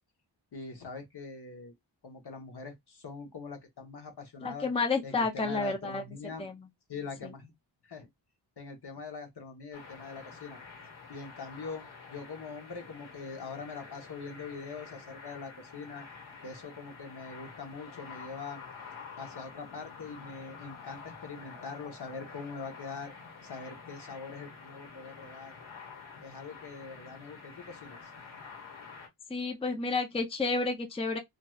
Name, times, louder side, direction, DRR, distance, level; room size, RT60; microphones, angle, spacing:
voice 1, 0.5-1.7 2.0-4.7 5.0-6.4 6.9-7.5 7.8-8.1 8.6-10.6 11.1-16.1 16.4-18.6 19.2-23.1 23.4-25.6 26.2-28.1, left 4 dB, 55° left, 1.0 m, -43 dB
voice 2, 4.4-6.0 6.4-6.6 7.2-7.3 29.3-31.2, left 3 dB, 15° left, 0.5 m, -30 dB
sound 1, 9.7-29.1, left 5 dB, 90° left, 1.4 m, -48 dB
3.1 x 2.6 x 2.3 m
wide cardioid pair, 100°, 46 cm